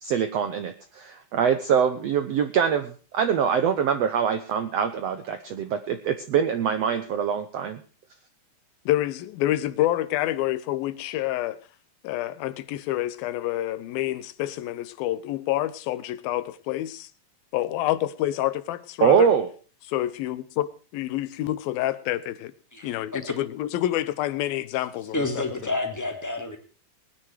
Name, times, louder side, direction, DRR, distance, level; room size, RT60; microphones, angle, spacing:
voice 1, 0.0-7.8 19.0-19.5, right 7 dB, 75° right, 1.5 m, -24 dB
voice 2, 8.9-11.6 12.0-17.1 17.5-19.3 19.9-22.5 22.8-25.2, left 14 dB, 85° left, 2.7 m, -28 dB
voice 3, 22.7-23.4 25.1-26.6, left 2 dB, 5° left, 1.9 m, -29 dB
19.5 x 9.9 x 4.6 m
omnidirectional pair, 4.1 m